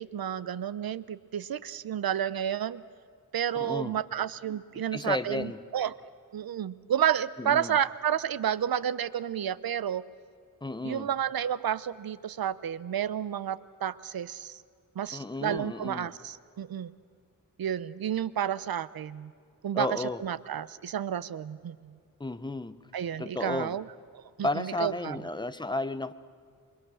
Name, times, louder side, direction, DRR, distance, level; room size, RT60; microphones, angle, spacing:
voice 1, 0.0-2.8 3.3-5.9 6.3-10.0 10.8-14.6 15.0-16.9 17.6-19.3 19.6-22.0 22.9-23.9 24.1-25.2, right 9 dB, 85° right, 17 dB, 0.7 m, -31 dB
voice 2, 3.6-4.0 4.7-5.6 7.4-7.8 10.6-11.1 15.1-16.1 19.7-20.2 22.2-22.8 23.2-23.7 24.4-26.1, left 2 dB, 15° left, 12 dB, 0.7 m, -33 dB
28.0 x 23.5 x 6.3 m, 2.1 s
wide cardioid pair, 155°, 35 cm